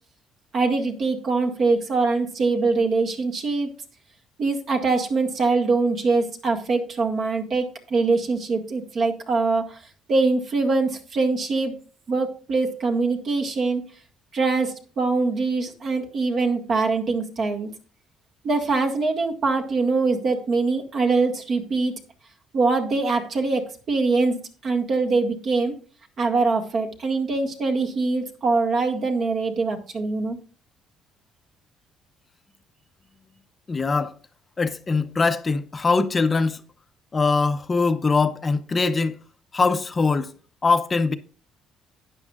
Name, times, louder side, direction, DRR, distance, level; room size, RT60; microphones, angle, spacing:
voice 1, 0.5-3.7 4.4-9.8 10.1-11.7 12.1-13.8 14.3-17.7 18.4-21.9 22.5-25.7 26.2-30.4, right 3 dB, 45° right, 1.8 m, -23 dB
voice 2, 33.7-34.1 34.6-36.6 37.1-39.2 39.5-40.3 40.6-41.1, left 4 dB, 25° left, 0.6 m, -22 dB
12.0 x 9.8 x 2.4 m
cardioid pair, 125°, 0 cm